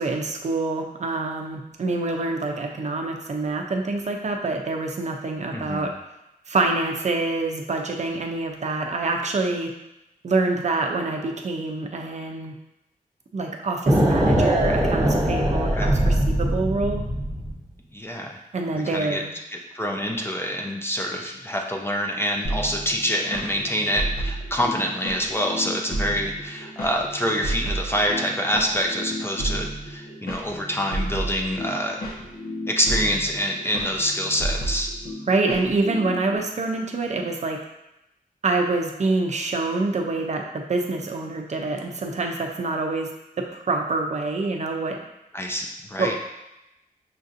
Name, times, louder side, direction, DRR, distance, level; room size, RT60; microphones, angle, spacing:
voice 1, 0.0-5.9 6.5-9.7 10.2-12.5 13.3-17.0 18.5-19.3 35.3-37.6 38.4-43.1 43.4-45.0 46.0-46.2, right 3 dB, 50° right, 2 dB, 0.5 m, -26 dB
voice 2, 5.5-5.9 15.7-15.9 17.9-18.4 18.7-19.2 19.5-32.0 32.7-34.9 45.3-46.1, equal, 15° left, 0 dB, 0.5 m, -26 dB
sound 1, 13.9-17.6, right 1 dB, 25° right, 1.0 m, -21 dB
sound 2, 22.4-36.4, right 1 dB, 90° left, 0.9 m, -32 dB
5.7 x 2.6 x 2.5 m, 0.88 s
wide cardioid pair, 115°, 15 cm